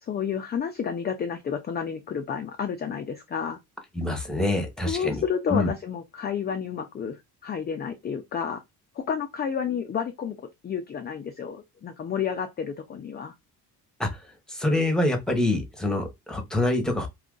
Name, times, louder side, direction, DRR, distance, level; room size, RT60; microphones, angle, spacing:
voice 1, 0.0-3.6 4.8-8.6 9.0-10.4 10.6-13.3, left 7 dB, 25° left, 0.4 m, -30 dB
voice 2, 3.9-5.2 5.5-5.7 14.0-14.1 14.5-17.1, left 2 dB, ahead, 0.9 m, -25 dB
2.7 x 2.5 x 3.7 m
cardioid pair, 120°, 39 cm